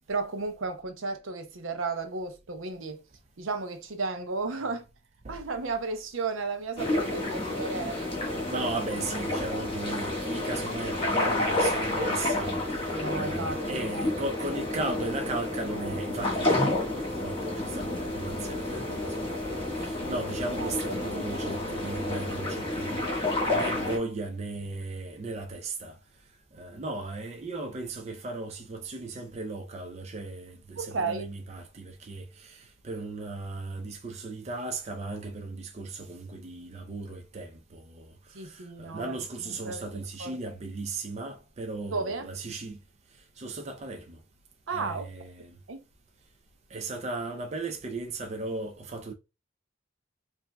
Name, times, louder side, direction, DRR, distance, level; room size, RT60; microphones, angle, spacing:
voice 1, 0.1-3.0 3.4-4.8 5.3-8.7 12.9-14.1 20.6-21.4 30.8-31.3 38.3-39.2 39.6-39.8 40.2-40.4 41.9-42.3 44.7-45.1 45.7-45.8, right 4 dB, 85° right, 0.7 m, -34 dB
sound 1, 6.8-24.0, left 1 dB, 25° left, 1.4 m, -30 dB
voice 2, 8.5-26.0 26.5-42.8 43.1-44.2 44.7-45.6 46.7-49.1, right 2 dB, 35° right, 0.4 m, -37 dB
4.7 x 2.6 x 2.2 m
head